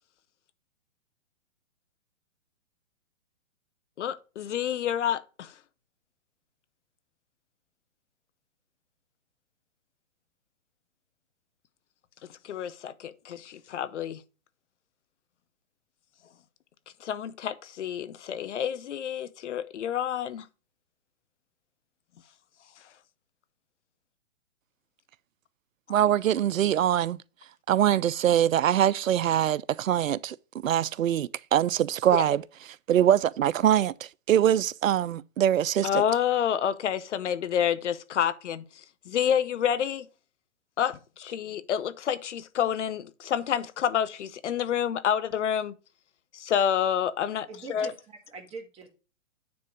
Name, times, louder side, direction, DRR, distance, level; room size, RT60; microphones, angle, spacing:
voice 1, 4.0-5.5 12.4-14.2 17.0-20.5 32.1-32.2 35.8-40.1 40.8-45.7 46.3-47.9, left 9 dB, 65° left, 1.0 m, -28 dB
voice 2, 25.9-27.2 27.7-30.4 30.6-32.4 32.9-36.0, right 11 dB, 90° right, 0.5 m, -23 dB
voice 3, 47.5-48.9, right 4 dB, 15° right, 1.7 m, -43 dB
9.5 x 3.8 x 4.7 m
hypercardioid pair, 135°, 38 cm